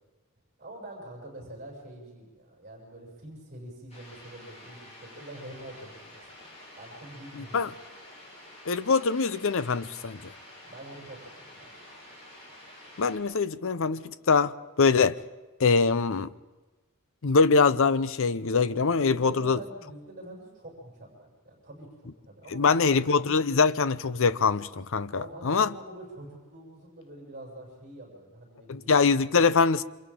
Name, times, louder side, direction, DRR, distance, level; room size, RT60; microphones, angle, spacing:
voice 1, 0.6-6.2 6.8-7.7 10.6-11.7 19.0-22.8 25.1-28.9, right 1 dB, 40° right, 6.9 m, -45 dB
sound 1, 3.9-13.2, left 1 dB, 30° left, 7.4 m, -49 dB
voice 2, 7.4-7.7 8.7-10.3 13.0-15.2 15.6-16.3 17.2-19.6 22.5-25.7 28.7-29.8, left 4 dB, 65° left, 0.7 m, -23 dB
28.5 x 26.0 x 3.8 m
head